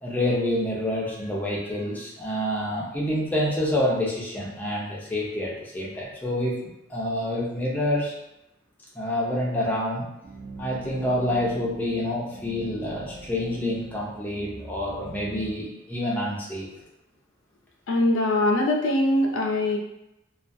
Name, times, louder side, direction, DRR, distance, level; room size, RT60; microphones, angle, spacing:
voice 1, 0.0-6.6 6.9-8.1 8.9-10.1 10.6-16.7, left 1 dB, 10° left, -5 dB, 0.5 m, -27 dB
sound 1, 10.2-15.5, right 3 dB, 50° right, 0.6 m, -41 dB
voice 2, 17.9-19.8, left 1 dB, 70° left, 1 dB, 0.5 m, -22 dB
2.3 x 2.3 x 2.5 m, 0.87 s
head